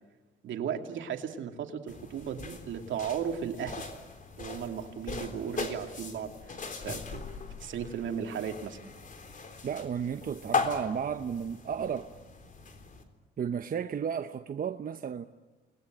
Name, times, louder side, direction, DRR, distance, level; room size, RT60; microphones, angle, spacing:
voice 1, 0.4-3.9 4.4-6.3 6.8-7.2 7.6-8.8, right 8 dB, 70° right, 5 dB, 2.6 m, -35 dB
sound 1, 1.9-13.0, left 4 dB, 40° left, 3.7 m, -39 dB
voice 2, 9.6-12.1 13.4-15.2, right 7 dB, 45° right, 8 dB, 0.9 m, -33 dB
29.0 x 21.0 x 9.1 m, 1.2 s
cardioid pair, 90°, 20 cm